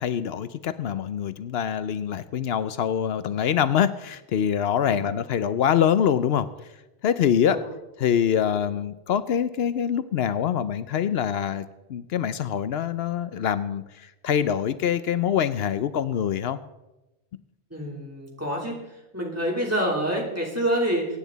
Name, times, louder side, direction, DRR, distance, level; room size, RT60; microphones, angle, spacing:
voice 1, 0.0-6.5 7.0-7.7 8.0-16.6, left 9 dB, 80° left, 13 dB, 0.9 m, -25 dB
voice 2, 17.7-18.7 19.1-21.1, right 1 dB, 15° right, -2 dB, 3.2 m, -27 dB
23.5 x 9.4 x 4.0 m, 0.99 s
omnidirectional pair, 1.0 m